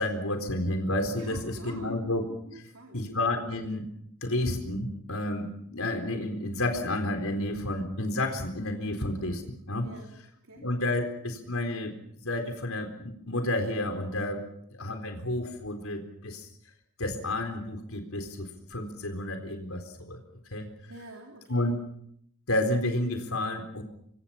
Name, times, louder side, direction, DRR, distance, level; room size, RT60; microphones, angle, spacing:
voice 1, 0.0-2.2 2.5-2.6 2.9-3.9 4.2-9.8 10.6-11.9 12.2-14.4 14.7-16.5 17.0-20.2 20.5-20.7 21.5-21.8 22.5-23.8, left 1 dB, 80° left, 5 dB, 4.1 m, -30 dB
voice 2, 1.2-1.9 2.5-3.0 9.8-10.1 10.4-10.6 20.9-21.7, right 1 dB, 80° right, 1 dB, 3.2 m, -46 dB
25.5 x 24.5 x 5.8 m, 0.71 s
head